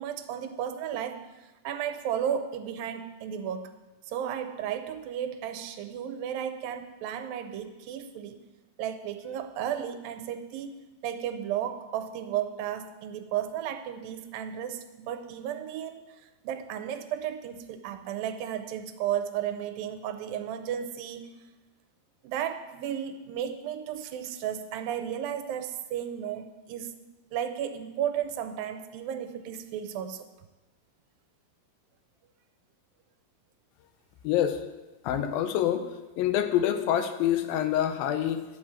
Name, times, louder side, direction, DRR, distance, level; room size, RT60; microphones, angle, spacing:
voice 1, 0.0-3.7 4.1-8.4 8.8-10.7 11.0-16.0 16.4-21.2 22.2-26.9 27.3-30.3, right 9 dB, 80° right, 8 dB, 2.4 m, -34 dB
voice 2, 34.2-34.6 35.0-35.8 36.2-38.4, left 10 dB, 85° left, 8 dB, 2.5 m, -26 dB
10.5 x 5.0 x 7.3 m, 1.1 s
omnidirectional pair, 4.1 m